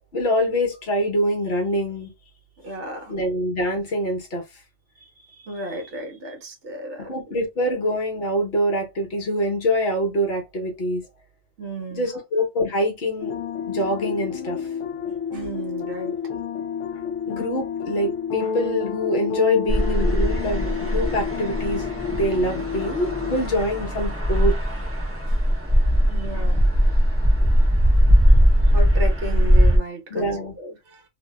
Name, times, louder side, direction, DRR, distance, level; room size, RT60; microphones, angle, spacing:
voice 1, 0.1-2.1 3.1-4.4 7.0-11.0 11.9-13.3 13.7-14.6 17.3-24.6 26.3-26.4 30.1-30.5, equal, 55° left, 1.2 m, -25 dB
voice 2, 2.6-3.1 5.0-7.2 11.6-12.2 15.3-16.2 25.3-25.4 26.1-26.6 28.7-31.0, equal, 60° right, 1.2 m, -34 dB
sound 1, 13.2-23.5, left 7 dB, 75° left, 0.9 m, -30 dB
sound 2, 19.7-29.8, equal, 15° right, 0.5 m, -19 dB
2.7 x 2.7 x 2.3 m
omnidirectional pair, 1.3 m